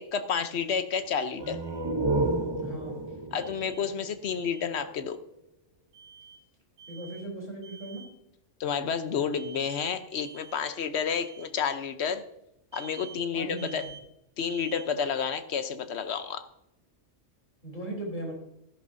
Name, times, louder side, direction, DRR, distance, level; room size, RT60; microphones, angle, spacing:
voice 1, 0.0-1.6 3.3-5.2 8.6-12.2 12.7-13.8 14.4-16.4, left 6 dB, 65° left, 10 dB, 1.0 m, -30 dB
sound 1, 1.3-4.9, right 2 dB, 30° right, 0.5 m, -31 dB
voice 2, 2.6-3.0 6.9-8.0 13.3-13.9 17.6-18.3, right 1 dB, 40° left, -1 dB, 3.8 m, -38 dB
Alarm, 3.4-3.8 4.2-4.7 5.9-6.4 6.8-7.3 7.6-8.1 9.3-9.8 10.2-10.6 11.0-11.5 12.7-13.2 13.6-14.0 14.4-14.9, right 6 dB, 65° right, 2.6 m, -48 dB
13.0 x 11.0 x 2.6 m, 0.84 s
omnidirectional pair, 1.3 m